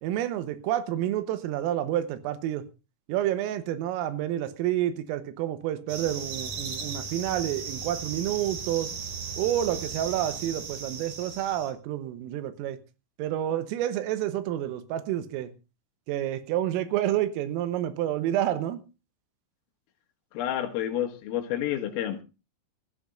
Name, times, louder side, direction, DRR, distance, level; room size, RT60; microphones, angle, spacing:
voice 1, 0.0-2.6 3.1-8.9 9.4-12.8 13.2-15.5 16.1-18.8, right 12 dB, 85° right, 3.7 m, -29 dB
sound 1, 5.9-11.7, right 5 dB, 50° right, 2.8 m, -36 dB
voice 2, 20.3-22.2, left 11 dB, 85° left, 4.2 m, -29 dB
22.5 x 14.0 x 2.5 m
omnidirectional pair, 5.8 m